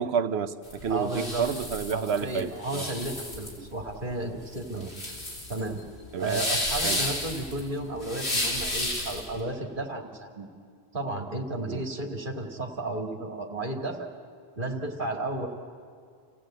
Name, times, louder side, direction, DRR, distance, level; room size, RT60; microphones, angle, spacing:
voice 1, 0.0-2.9 4.7-4.9 6.1-6.4 6.8-7.0 11.6-11.8, right 6 dB, 80° right, 11 dB, 1.1 m, -30 dB
sound 1, 0.6-9.3, left 1 dB, 80° left, 4.0 m, -32 dB
voice 2, 0.9-1.4 1.9-4.9 5.5-5.8 6.2-10.5 10.9-14.1 14.6-15.5, right 2 dB, 50° right, 2 dB, 2.4 m, -33 dB
27.5 x 16.5 x 8.9 m, 2.1 s
omnidirectional pair, 1.1 m